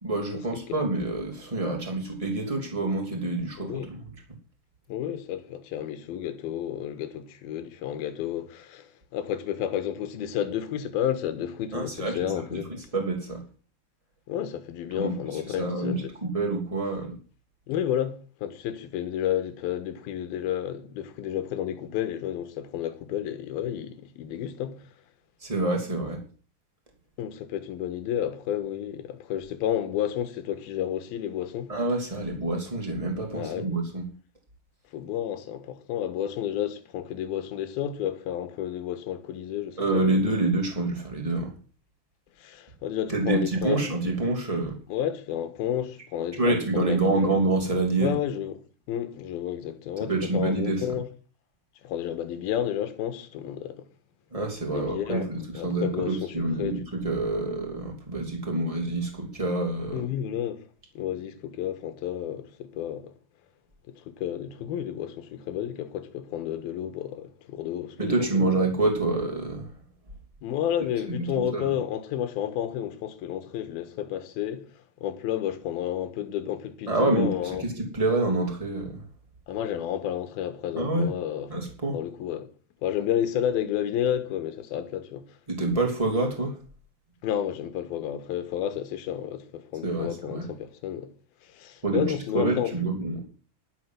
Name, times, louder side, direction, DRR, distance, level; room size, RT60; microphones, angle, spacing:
voice 1, 0.0-4.0 11.7-12.2 12.5-12.6 12.9-13.4 14.9-15.1 15.6-17.2 25.4-26.2 31.7-34.1 39.8-41.5 43.1-44.8 46.4-48.2 50.1-50.8 54.3-60.0 68.0-69.7 71.1-71.7 76.9-79.0 80.7-81.1 81.5-81.9 85.5-86.5 89.8-90.5 91.8-92.0 92.3-93.2, right 2 dB, 10° right, 1.9 m, -27 dB
voice 2, 3.6-3.9 4.9-12.8 14.3-16.1 17.7-24.9 27.2-31.7 33.3-33.7 34.9-40.3 42.4-43.9 44.9-47.3 48.0-48.6 48.9-51.1 51.8-53.9 54.7-55.3 55.5-56.8 59.9-60.7 60.9-63.1 63.9-68.5 70.4-77.6 79.5-81.5 81.9-82.5 82.8-85.4 87.2-91.1 91.4-92.8, left 10 dB, 65° left, 2.9 m, -31 dB
12.0 x 7.7 x 7.5 m
omnidirectional pair, 5.0 m